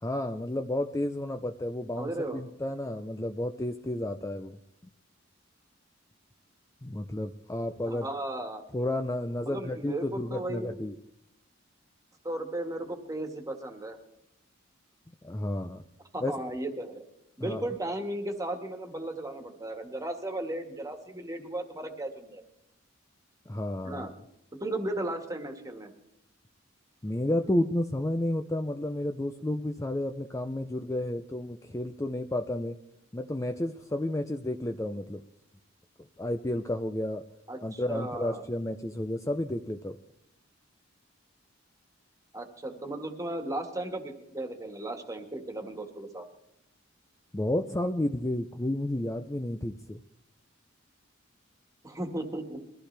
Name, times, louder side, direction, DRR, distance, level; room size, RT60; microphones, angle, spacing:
voice 1, 0.0-4.6 6.8-8.1 8.7-10.9 15.2-15.8 16.2-16.3 17.4-17.7 23.5-24.1 27.0-32.7 33.1-35.2 36.2-37.2 37.6-40.0 47.3-50.0, left 1 dB, 15° left, 6 dB, 0.5 m, -31 dB
voice 2, 2.0-2.4 7.8-8.6 9.4-10.8 12.2-14.0 16.1-17.0 17.4-22.4 23.8-24.1 24.6-25.9 37.5-38.4 42.3-46.3 51.8-52.6, right 1 dB, 15° right, 5 dB, 1.7 m, -35 dB
22.0 x 14.5 x 3.4 m, 0.83 s
head